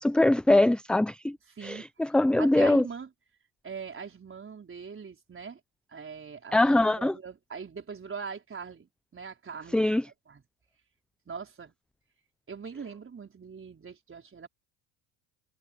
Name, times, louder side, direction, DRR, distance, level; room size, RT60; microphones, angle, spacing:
voice 1, 0.0-1.4 1.6-2.8 6.5-7.1 9.7-10.0, left 1 dB, ahead, 0.6 m, -22 dB
voice 2, 1.6-1.9 2.4-3.1 3.6-5.6 5.9-9.9 10.3-10.4 11.3-11.7 12.5-14.5, right 5 dB, 25° right, 4.9 m, -41 dB
hypercardioid pair, 80°, 48 cm